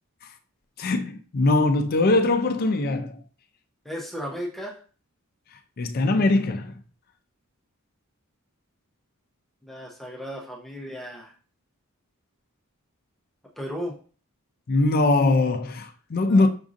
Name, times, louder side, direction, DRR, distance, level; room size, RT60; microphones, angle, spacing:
voice 1, 0.8-3.2 5.8-6.8 14.7-16.5, left 2 dB, 45° left, 0.4 m, -21 dB
voice 2, 3.8-4.8 9.6-11.3 13.6-14.0 16.3-16.5, equal, ahead, 0.6 m, -35 dB
5.9 x 2.6 x 2.5 m
head